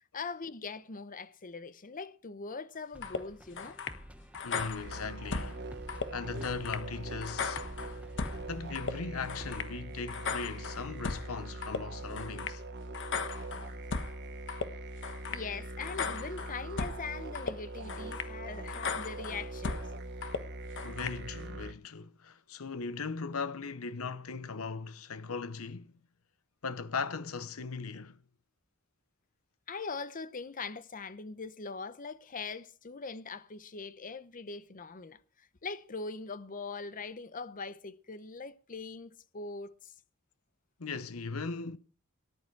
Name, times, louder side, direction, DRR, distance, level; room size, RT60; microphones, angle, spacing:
voice 1, 0.1-3.8 15.3-19.8 29.7-39.9, left 4 dB, 40° left, 0.8 m, -41 dB
sound 1, 2.9-9.6, equal, 5° right, 1.2 m, -51 dB
sound 2, 3.0-3.2 3.6-4.0 4.3-5.5 5.9-6.1 6.4-6.8 7.2-8.4 8.7-8.9 9.3-9.7 10.1-11.3 11.6-11.8 12.2-12.6 12.9-14.1 14.5-14.7 15.0-15.4 15.8-17.0 17.3-17.5 17.9-18.3 18.7-19.9 20.2-20.4 20.8-21.2, left 5 dB, 60° left, 1.2 m, -37 dB
voice 2, 4.4-5.6 6.1-7.6 8.5-12.6 20.8-25.9 26.6-28.2 40.8-41.8, left 4 dB, 80° left, 0.9 m, -38 dB
sound 3, 4.8-21.7, right 2 dB, 55° right, 1.2 m, -42 dB
18.5 x 11.0 x 4.6 m
head